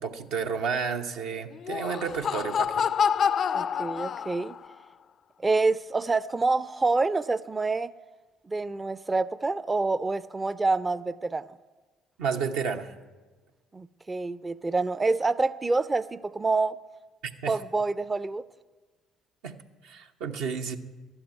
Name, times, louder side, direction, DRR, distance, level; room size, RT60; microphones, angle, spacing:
voice 1, 0.0-2.9 12.2-12.9 17.4-17.5 19.4-19.6 19.8-20.8, right 6 dB, 75° right, 4 dB, 0.9 m, -31 dB
Laughter, 1.5-4.7, left 7 dB, 55° left, 0.3 m, -27 dB
voice 2, 3.5-4.6 5.4-7.9 8.5-11.5 13.7-16.8 17.5-18.4, right 3 dB, 25° right, 14 dB, 0.4 m, -27 dB
12.5 x 7.1 x 9.1 m, 1.3 s
hypercardioid pair, 55°, 0 cm